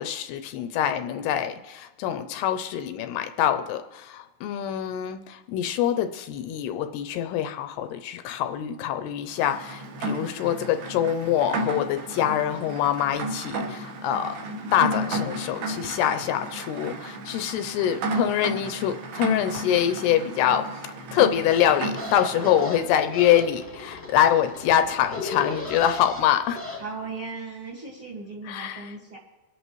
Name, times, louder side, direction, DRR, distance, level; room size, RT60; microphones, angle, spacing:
voice 1, 0.0-14.4 14.7-20.6 21.1-26.6 28.5-28.9, left 10 dB, 80° left, 9 dB, 2.4 m, -25 dB
Rain, 9.4-22.7, right 1 dB, 70° right, 3.1 m, -33 dB
sound 1, 21.4-26.8, left 3 dB, 15° left, 1.1 m, -36 dB
voice 2, 26.8-29.2, right 4 dB, 45° right, -3 dB, 1.9 m, -37 dB
24.5 x 11.0 x 3.1 m, 1.2 s
omnidirectional pair, 5.0 m